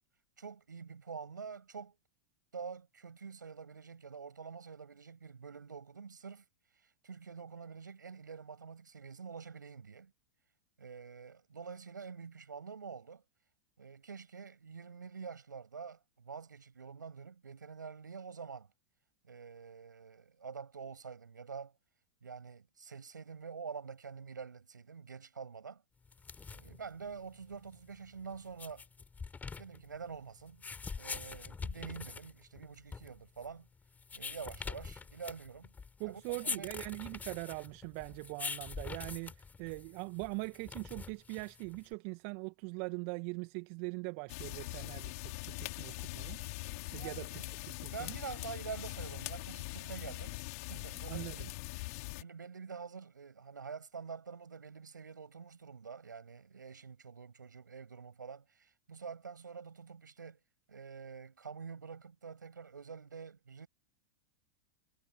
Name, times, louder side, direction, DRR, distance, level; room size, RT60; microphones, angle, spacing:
voice 1, 0.4-2.0 2.5-6.4 6.8-10.1 10.8-13.2 13.8-18.7 19.2-21.7 22.2-25.8 26.5-28.8 29.6-30.6 30.9-33.7 34.1-35.7 36.0-36.7 46.9-47.5 47.9-50.4 50.7-51.5 51.8-60.4 60.7-63.7, right 5 dB, 85° right, 6.7 m, -47 dB
sound 1, 26.0-41.9, left 5 dB, 15° left, 5.5 m, -45 dB
voice 2, 36.0-46.4 46.9-47.4 47.8-48.2 51.1-51.5, right 31 dB, 50° right, 1.8 m, -42 dB
sound 2, 44.3-52.2, left 24 dB, 55° left, 3.8 m, -42 dB
hypercardioid pair, 95°, 10 cm